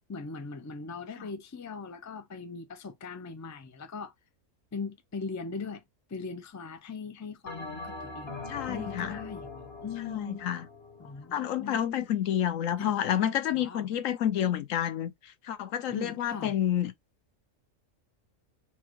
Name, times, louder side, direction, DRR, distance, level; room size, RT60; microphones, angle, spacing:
voice 1, 0.1-4.1 4.7-5.8 6.1-8.4 8.7-10.5 11.0-11.8 12.8-13.0 13.5-13.9 15.9-16.5, left 5 dB, 25° left, 0.4 m, -39 dB
Bell, 7.5-12.1, left 3 dB, 50° left, 1.7 m, -42 dB
voice 2, 8.5-9.2 10.1-10.6 11.3-16.9, left 10 dB, 75° left, 1.1 m, -29 dB
4.4 x 2.3 x 4.5 m
omnidirectional pair, 1.4 m